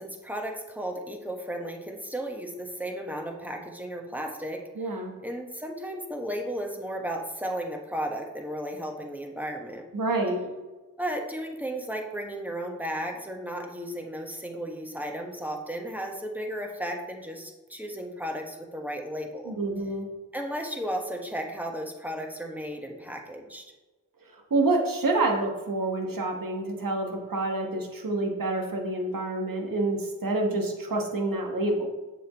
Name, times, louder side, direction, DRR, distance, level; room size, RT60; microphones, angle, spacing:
voice 1, 0.0-9.8 11.0-19.6 20.3-23.6, equal, 5° right, 2 dB, 1.3 m, -34 dB
voice 2, 4.8-5.1 9.9-10.4 19.4-20.1 24.5-31.9, right 2 dB, 65° right, 2 dB, 1.3 m, -27 dB
7.0 x 6.1 x 3.1 m, 1.2 s
cardioid pair, 40°, 36 cm